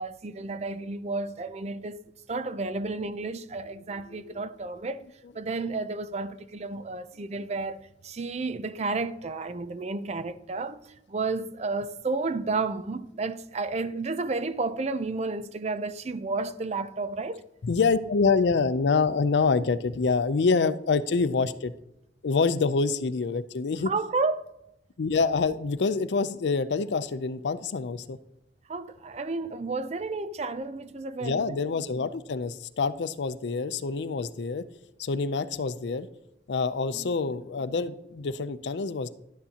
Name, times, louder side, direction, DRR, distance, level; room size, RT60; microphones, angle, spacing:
voice 1, 0.0-2.0 2.3-5.0 5.3-7.8 8.0-17.5 23.9-24.5 28.7-31.7 36.9-37.1, right 3 dB, 40° right, 0.5 m, -32 dB
voice 2, 4.1-4.4 7.4-7.5 17.6-21.7 22.2-23.9 25.0-28.2 31.2-34.6 35.0-36.1 36.5-39.1, left 4 dB, 80° left, 0.5 m, -26 dB
11.5 x 9.5 x 2.9 m
head